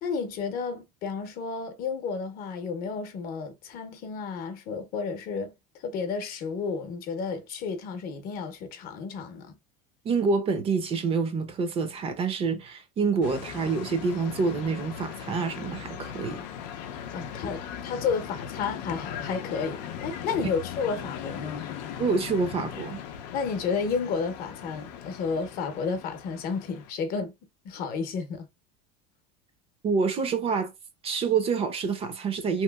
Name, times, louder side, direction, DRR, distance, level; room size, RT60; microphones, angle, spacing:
voice 1, 0.0-9.6 17.1-21.7 23.3-27.3 27.6-28.5, left 5 dB, 45° left, 0.8 m, -32 dB
voice 2, 10.0-16.5 20.4-20.5 22.0-23.0 29.8-30.7 31.0-32.6, right 5 dB, 25° right, 0.5 m, -27 dB
sound 1, 13.2-26.9, left 9 dB, 85° left, 0.5 m, -39 dB
3.0 x 2.7 x 2.3 m
supercardioid pair, 140°, 21 cm